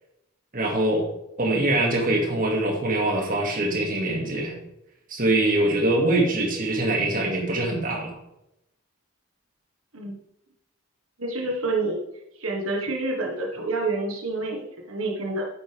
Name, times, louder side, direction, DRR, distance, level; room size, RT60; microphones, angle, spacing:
voice 1, 0.5-1.1 1.4-4.5 5.1-8.2, right 1 dB, 40° right, 0 dB, 2.2 m, -23 dB
voice 2, 11.2-12.0 12.4-15.4, right 2 dB, 80° right, 0 dB, 1.6 m, -28 dB
9.5 x 8.1 x 3.5 m, 0.86 s
head